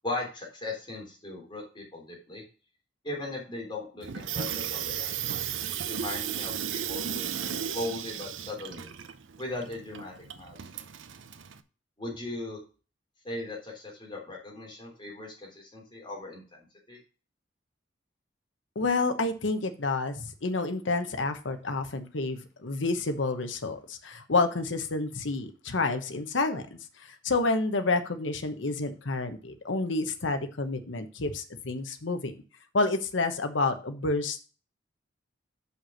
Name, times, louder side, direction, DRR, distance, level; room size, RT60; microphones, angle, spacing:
voice 1, 0.0-2.4 3.0-5.5 5.8-8.9 9.4-10.6 12.0-12.6 13.2-17.0, left 2 dB, 25° left, -2 dB, 3.6 m, -38 dB
Water tap faucet / Sink (filling or washing), 4.0-11.6, right 9 dB, 80° right, 0.7 m, -35 dB
voice 2, 18.7-26.6 27.0-32.3 32.7-34.5, left 3 dB, 75° left, 7 dB, 1.0 m, -29 dB
5.9 x 5.6 x 6.2 m, 0.35 s
head